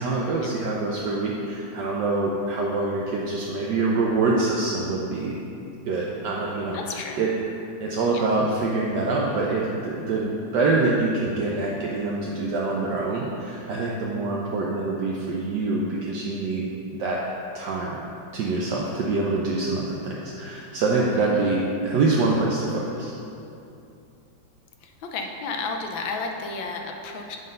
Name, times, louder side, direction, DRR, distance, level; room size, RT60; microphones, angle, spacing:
voice 1, 0.0-5.4 5.9-7.3 7.8-16.7 17.0-17.2 17.5-18.0 18.3-23.1, right 3 dB, 70° right, -3 dB, 1.2 m, -25 dB
voice 2, 6.7-7.3 8.1-8.3 21.0-21.5 24.8-27.4, left 4 dB, 80° left, 3 dB, 1.4 m, -33 dB
7.8 x 3.9 x 5.2 m, 2.7 s
omnidirectional pair, 2.1 m